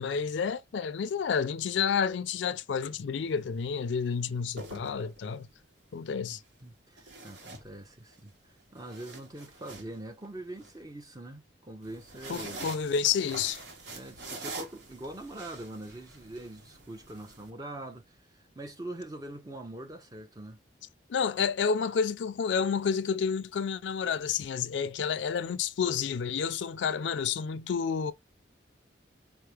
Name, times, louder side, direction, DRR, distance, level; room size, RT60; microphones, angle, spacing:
voice 1, 0.0-5.5 5.9-6.4 12.3-13.6 21.1-28.1, left 6 dB, 80° left, 0.4 m, -30 dB
sound 1, 3.2-3.4 4.3-5.5 7.0-8.2 8.6-10.7 11.8-17.5, right 2 dB, 70° right, 1.0 m, -45 dB
voice 2, 6.1-12.7 13.9-20.6, right 1 dB, 20° right, 0.6 m, -43 dB
4.5 x 2.0 x 3.2 m
head